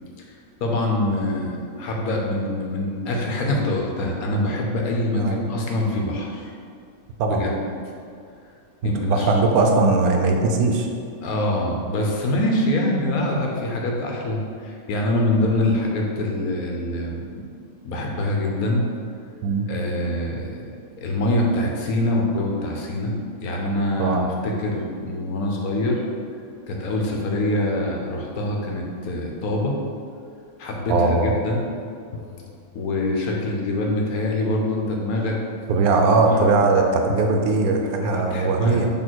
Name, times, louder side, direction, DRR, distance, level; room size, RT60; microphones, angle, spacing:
voice 1, 0.6-6.5 7.3-7.5 8.8-9.3 11.2-17.4 17.8-18.9 19.7-20.7 21.0-23.1 23.4-26.0 26.7-29.8 30.6-31.6 32.7-35.4 36.3-36.6 38.0-38.8, left 1 dB, 80° left, 0 dB, 1.3 m, -24 dB
voice 2, 8.8-10.9 19.4-19.7 24.0-24.3 30.9-31.3 35.7-38.9, right 3 dB, 85° right, 3 dB, 1.1 m, -20 dB
sound 1, 32.1-33.8 37.1-37.7, left 4 dB, 65° left, 0.7 m, -39 dB
6.3 x 3.3 x 4.5 m, 2.4 s
omnidirectional pair, 1.5 m